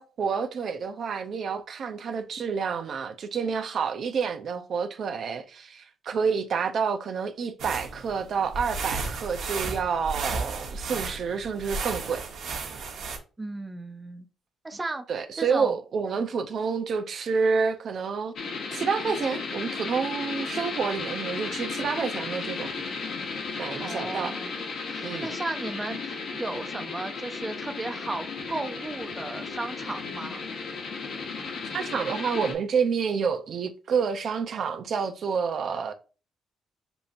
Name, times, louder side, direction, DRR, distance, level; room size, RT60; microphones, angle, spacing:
voice 1, 0.0-12.2 15.1-18.3 18.7-22.7 23.6-24.3 25.0-25.3 31.7-35.9, right 6 dB, 60° right, 0.6 m, -29 dB
sound 1, 7.6-13.2, right 4 dB, 80° right, 1.3 m, -34 dB
voice 2, 13.4-14.3 14.6-15.7 23.8-30.4, right 2 dB, 20° right, 0.6 m, -35 dB
sound 2, 18.4-32.5, left 4 dB, 70° left, 1.4 m, -34 dB
6.9 x 2.8 x 2.6 m
cardioid pair, 90°, 0 cm